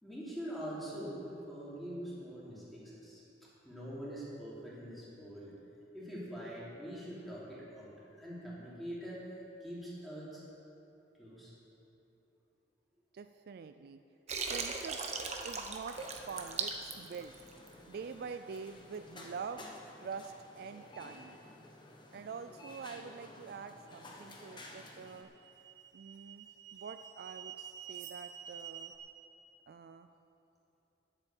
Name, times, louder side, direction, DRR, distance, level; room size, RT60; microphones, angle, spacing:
voice 1, 0.0-3.2 3.6-5.5 5.9-9.3 9.6-10.4 11.2-11.5, equal, ahead, -8 dB, 3.1 m, -44 dB
voice 2, 13.1-14.0 14.5-15.0 15.4-17.3 17.9-19.7 20.0-21.4 22.1-25.3 25.9-26.5 26.7-28.9 29.7-30.1, right 5 dB, 60° right, 9 dB, 0.4 m, -45 dB
Water, 14.3-17.7, right 5 dB, 40° right, 1.0 m, -38 dB
sound 1, 15.9-25.2, left 1 dB, 25° left, 1.2 m, -53 dB
sound 2, 24.0-24.1 24.9-29.0, right 9 dB, 80° right, 0.9 m, -49 dB
10.0 x 8.4 x 7.3 m, 2.8 s
head